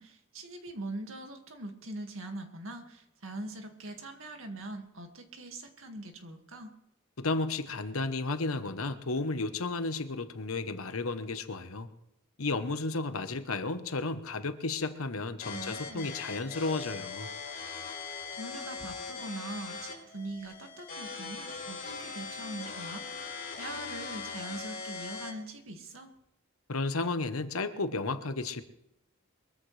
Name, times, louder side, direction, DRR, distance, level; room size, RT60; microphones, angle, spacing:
voice 1, 0.0-6.7 15.5-16.1 18.3-26.1, right 2 dB, 70° right, 4 dB, 2.1 m, -42 dB
voice 2, 7.2-11.9 12.4-17.3 26.7-28.6, left 3 dB, 85° left, 10 dB, 1.1 m, -33 dB
sound 1, 15.4-25.4, left 5 dB, 50° left, 4.3 m, -40 dB
23.0 x 14.0 x 3.3 m, 0.85 s
head